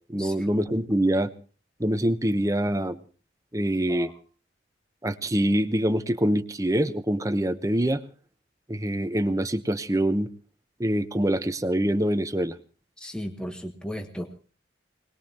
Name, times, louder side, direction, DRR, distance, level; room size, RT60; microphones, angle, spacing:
voice 1, 0.1-1.3 1.8-3.0 3.5-4.1 5.0-8.0 8.7-10.3 10.8-12.6, right 1 dB, 15° right, 12 dB, 0.8 m, -25 dB
voice 2, 13.0-14.5, equal, 5° left, 4 dB, 1.1 m, -36 dB
24.5 x 20.0 x 2.9 m, 0.39 s
head